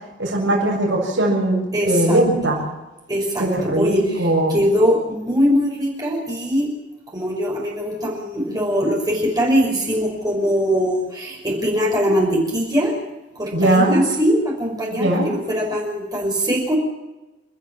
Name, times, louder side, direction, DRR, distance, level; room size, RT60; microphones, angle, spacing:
voice 1, 0.2-2.6 3.4-4.6 13.5-14.0 14.9-15.3, right 1 dB, 75° right, -1 dB, 6.7 m, -19 dB
voice 2, 1.7-2.2 3.1-6.7 7.1-12.9 13.4-16.8, equal, 20° right, -2 dB, 5.7 m, -21 dB
29.5 x 13.0 x 7.4 m, 1.1 s
head